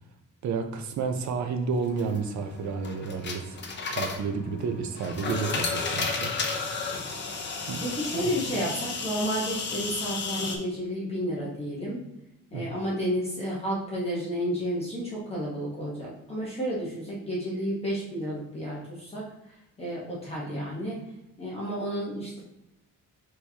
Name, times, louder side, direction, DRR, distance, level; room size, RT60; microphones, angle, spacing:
voice 1, 0.4-3.6 3.9-6.3 7.7-7.8 8.4-8.5 12.5-12.6, right 5 dB, 60° right, 7 dB, 0.6 m, -31 dB
sound 1, 1.8-10.6, left 4 dB, 35° left, 0.6 m, -33 dB
voice 2, 7.8-12.0 12.5-21.0 21.4-22.4, equal, 20° left, -6 dB, 0.9 m, -31 dB
6.4 x 2.9 x 2.8 m, 0.91 s
cardioid pair, 170°, 32 cm